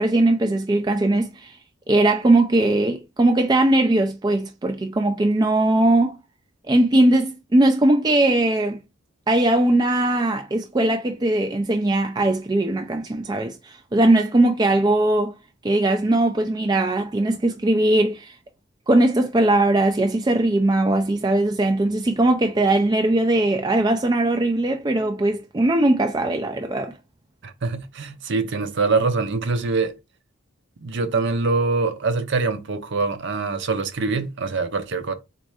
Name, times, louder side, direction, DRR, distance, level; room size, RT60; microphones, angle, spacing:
voice 1, 0.0-1.6 1.9-6.2 6.7-8.8 9.3-15.3 15.6-18.3 18.9-26.9, right 2 dB, 20° right, 0.3 m, -20 dB
voice 2, 27.4-29.9 30.8-35.1, right 4 dB, 55° right, 0.6 m, -24 dB
4.2 x 2.5 x 4.7 m
head